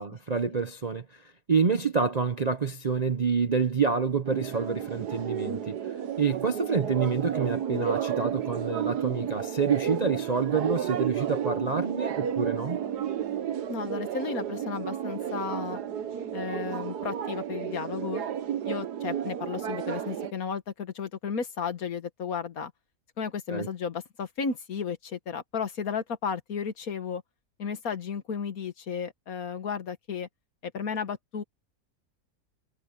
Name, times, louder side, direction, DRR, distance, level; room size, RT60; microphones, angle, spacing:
voice 1, 0.0-5.8 6.2-12.8 23.5-23.7, right 5 dB, 40° right, 0.6 m, -27 dB
sound 1, 4.2-20.3, right 9 dB, 90° right, 1.6 m, -32 dB
voice 2, 13.7-15.8 16.3-18.2 18.7-22.7 23.2-27.2 27.6-30.3 30.6-31.4, left 6 dB, 65° left, 1.8 m, -33 dB
omnidirectional pair, 1.7 m